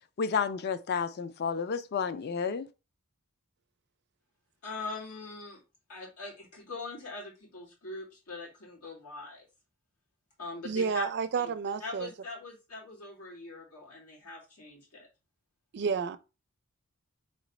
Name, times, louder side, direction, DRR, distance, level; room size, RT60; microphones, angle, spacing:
voice 1, 0.2-2.7, left 6 dB, 45° left, 0.4 m, -31 dB
voice 2, 4.6-5.6 5.9-9.5 10.4-11.0 11.4-11.5 11.8-15.1, left 3 dB, 80° left, 2.1 m, -42 dB
voice 3, 10.6-12.1 15.7-16.2, right 5 dB, 50° right, 0.4 m, -30 dB
3.2 x 3.1 x 4.0 m
head